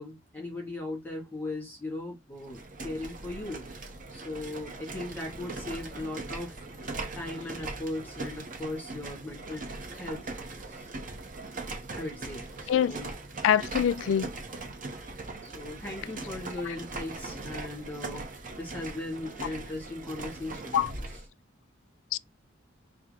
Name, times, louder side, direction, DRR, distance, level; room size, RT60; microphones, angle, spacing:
voice 1, 0.0-6.6 7.1-9.7 9.9-10.3 10.6-10.9 12.0-13.1 13.8-13.9 15.4-21.2, left 2 dB, 10° left, 1.8 m, -38 dB
sound 1, 2.4-21.3, right 3 dB, 45° right, 1.0 m, -40 dB
voice 2, 13.4-14.3 20.7-20.9 22.1-22.2, left 9 dB, 80° left, 0.3 m, -24 dB
4.4 x 2.2 x 3.6 m
head